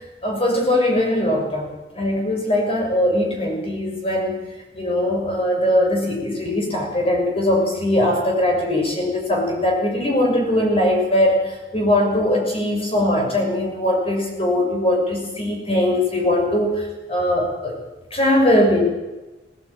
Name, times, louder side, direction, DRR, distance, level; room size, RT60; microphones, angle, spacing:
voice 1, 0.2-4.4 4.7-17.8 18.1-18.8, left 1 dB, 35° left, 0 dB, 6.4 m, -20 dB
18.0 x 17.5 x 9.0 m, 1.1 s
head